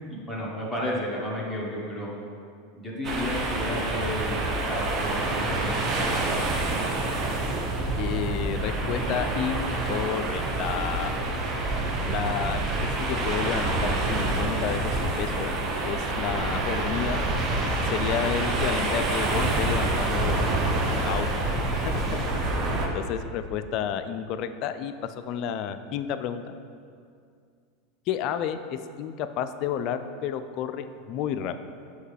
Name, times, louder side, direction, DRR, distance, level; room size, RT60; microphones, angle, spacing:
voice 1, 0.1-2.1 2.7-4.4 4.6-6.4, left 1 dB, ahead, -6 dB, 1.3 m, -32 dB
sound 1, 3.0-22.9, right 2 dB, 40° right, 0.8 m, -27 dB
voice 2, 8.0-11.1 12.0-15.5 15.8-17.2 17.6-21.3 21.7-22.2 22.9-26.5 28.1-31.5, left 9 dB, 50° left, 10 dB, 0.3 m, -31 dB
6.4 x 4.9 x 3.3 m, 2.3 s
hypercardioid pair, 90°, 0 cm